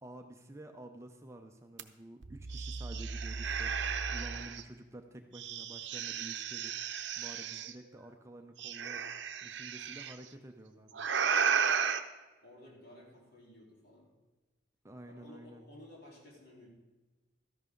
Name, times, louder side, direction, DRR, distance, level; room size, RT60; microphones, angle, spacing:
voice 1, 0.0-6.7 7.2-9.1 9.4-11.1 14.8-15.6, right 1 dB, 15° right, 5 dB, 0.6 m, -50 dB
sound 1, 1.8-1.9 2.2-4.6 5.3-7.7 8.6-10.1 10.9-12.0, right 6 dB, 65° right, 0.7 m, -34 dB
voice 2, 12.4-14.1 15.0-16.7, left 1 dB, 55° left, -3 dB, 3.7 m, -55 dB
13.5 x 11.0 x 3.8 m, 1.2 s
head